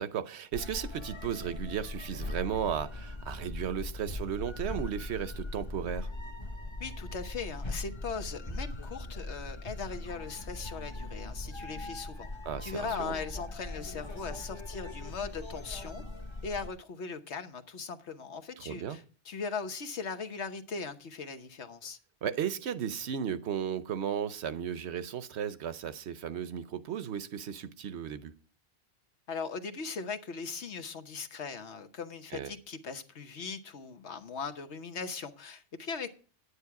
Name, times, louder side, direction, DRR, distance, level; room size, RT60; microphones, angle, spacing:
voice 1, 0.0-6.1 12.4-13.1 18.6-19.0 22.2-28.3 32.3-32.5, right 8 dB, 75° right, 1.0 m, -35 dB
sound 1, 0.5-16.7, left 2 dB, 25° left, 1.0 m, -40 dB
voice 2, 6.8-12.3 12.6-16.0 16.4-22.0 29.3-36.1, left 5 dB, 80° left, 1.4 m, -39 dB
9.9 x 9.7 x 4.7 m
omnidirectional pair, 1.1 m